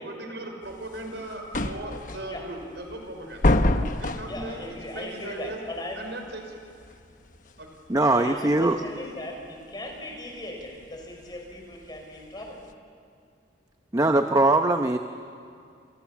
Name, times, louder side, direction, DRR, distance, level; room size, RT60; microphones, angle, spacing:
voice 1, 0.0-3.5 3.9-4.7 4.9-5.6 6.0-6.5 7.6-7.7, right 1 dB, 70° right, 4 dB, 5.3 m, -38 dB
sound 1, 0.6-12.7, left 1 dB, 45° left, 1.2 m, -30 dB
voice 2, 4.3-6.0 8.2-12.6, left 1 dB, 25° left, 1 dB, 5.5 m, -37 dB
voice 3, 7.9-8.8 13.9-15.0, right 2 dB, 20° right, 6 dB, 0.8 m, -21 dB
28.5 x 28.5 x 7.3 m, 2.3 s
head